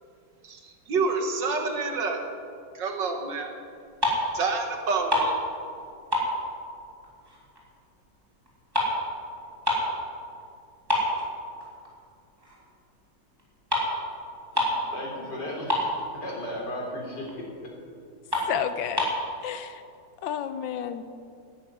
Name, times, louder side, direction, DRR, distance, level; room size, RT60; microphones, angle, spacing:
voice 1, 0.4-2.2 2.7-3.5 4.3-5.4, right 4 dB, 70° right, 4 dB, 2.2 m, -28 dB
sound 1, 3.7-4.4 4.7-5.8 6.1-7.6 7.9-10.0 10.4-10.5 10.9-12.0 12.4-12.6 13.4-13.5 13.7-13.9 14.2-14.3 14.5-14.9 15.2-15.3 15.5-16.3 16.8-16.9 17.3-17.4 17.8-17.9 18.3-19.2, left 1 dB, 10° right, 3.1 m, -27 dB
voice 2, 14.9-17.7, left 1 dB, 65° left, -2 dB, 4.3 m, -35 dB
voice 3, 18.5-19.1 19.4-19.7 20.2-21.0, left 9 dB, 85° left, 11 dB, 1.4 m, -30 dB
13.0 x 10.5 x 9.5 m, 2.4 s
omnidirectional pair, 2.0 m